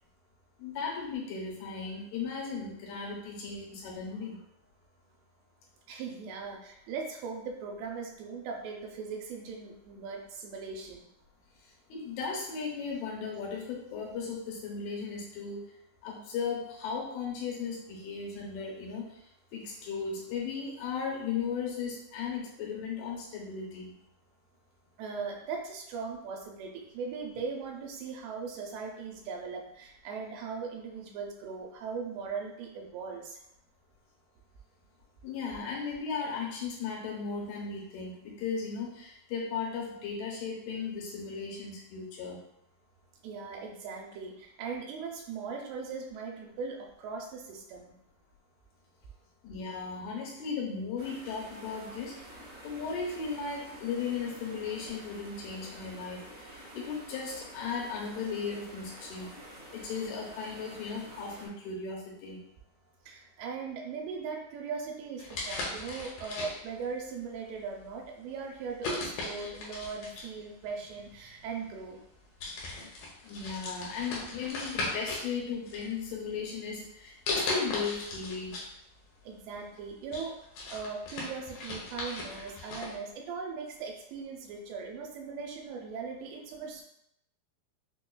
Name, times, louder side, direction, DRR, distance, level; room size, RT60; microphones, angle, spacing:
voice 1, 0.6-4.4 11.9-15.6 16.0-19.1 19.5-23.9 35.2-42.4 49.4-52.2 52.6-59.4 59.7-62.4 73.2-78.6, left 5 dB, 90° left, -2 dB, 2.8 m, -36 dB
voice 2, 5.9-11.0 25.0-33.4 43.2-47.9 63.1-72.0 79.2-80.4 80.7-86.8, right 5 dB, 80° right, 1 dB, 2.3 m, -39 dB
sound 1, 51.0-61.5, right 1 dB, 60° right, 1.9 m, -49 dB
sound 2, 65.2-66.8 67.6-67.8 68.8-70.4 71.5-71.6 72.0-72.2 72.4-75.3 75.7-76.4 77.3-78.7 79.0-79.1 79.6-83.0, left 2 dB, 75° left, 2.2 m, -37 dB
5.8 x 2.3 x 2.2 m, 0.77 s
omnidirectional pair, 4.3 m